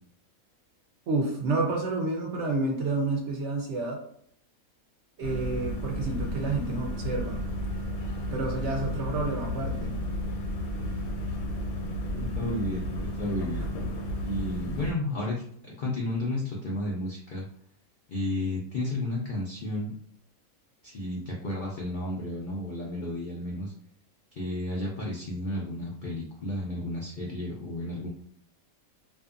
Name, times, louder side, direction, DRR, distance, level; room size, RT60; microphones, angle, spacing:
voice 1, 1.1-4.0 5.2-7.4 8.3-10.0, right 3 dB, 65° right, 1 dB, 0.7 m, -29 dB
sound 1, 5.2-14.9, equal, 90° left, 1.1 m, -32 dB
voice 2, 12.1-12.9 13.2-13.7 14.2-17.5 18.1-19.9 20.8-23.7 24.3-28.1, left 1 dB, 65° left, -3 dB, 0.5 m, -32 dB
2.5 x 2.5 x 2.4 m, 0.66 s
omnidirectional pair, 1.5 m